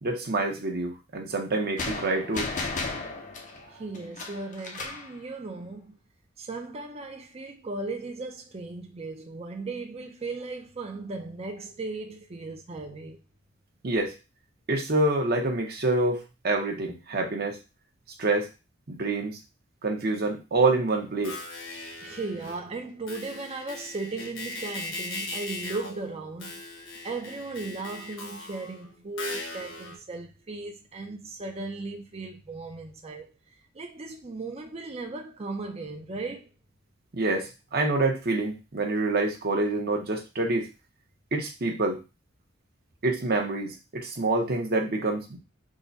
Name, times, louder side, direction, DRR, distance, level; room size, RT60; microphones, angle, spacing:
voice 1, 0.0-2.5 3.0-3.2 13.8-14.1 14.7-17.6 18.2-18.5 18.9-19.4 19.8-21.4 37.1-40.7 41.3-42.0 43.0-45.4, right 2 dB, 50° right, 0.9 m, -27 dB
sound 1, 1.8-5.1, left 3 dB, 40° left, 0.6 m, -34 dB
voice 2, 3.7-6.0 6.4-13.2 22.0-26.6 27.0-33.3 33.7-36.5, right 3 dB, 30° right, 0.5 m, -37 dB
sound 2, 21.0-22.7 23.1-30.0, left 2 dB, 70° left, 1.4 m, -39 dB
3.7 x 2.2 x 3.9 m
head